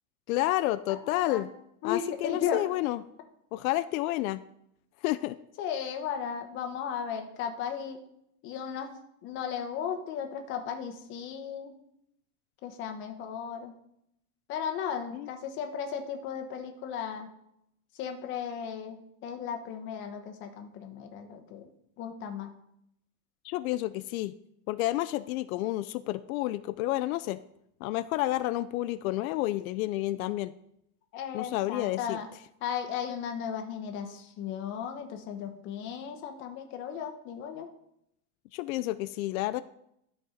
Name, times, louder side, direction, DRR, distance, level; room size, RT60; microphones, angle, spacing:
voice 1, 0.3-1.5 1.8-3.0 3.5-4.4 5.0-5.4 15.1-15.3 23.4-24.3 24.7-27.4 27.8-30.5 31.3-32.2 38.5-39.6, left 16 dB, 80° left, 13 dB, 0.5 m, -30 dB
voice 2, 1.1-1.4 1.8-2.6 5.6-8.0 8.4-9.0 9.2-11.7 12.6-13.8 14.5-17.3 18.0-21.7 22.0-22.5 31.1-32.3 32.6-37.7, left 8 dB, 30° left, 5 dB, 0.9 m, -35 dB
12.0 x 4.3 x 5.0 m, 0.75 s
supercardioid pair, 180°, 42 cm